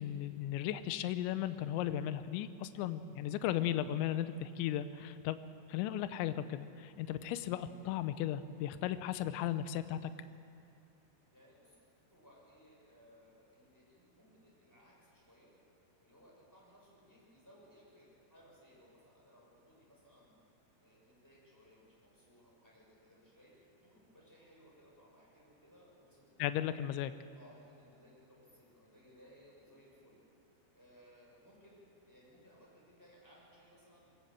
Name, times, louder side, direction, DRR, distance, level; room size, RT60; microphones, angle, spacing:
voice 1, 0.0-5.4 5.7-10.1 26.4-27.1, left 11 dB, 80° left, 12 dB, 2.9 m, -36 dB
voice 2, 11.3-11.8 12.1-15.5 16.0-20.4 20.8-26.4 27.4-30.2 30.7-34.3, equal, 5° left, -5 dB, 5.9 m, -62 dB
22.0 x 17.5 x 7.6 m, 2.6 s
omnidirectional pair, 5.7 m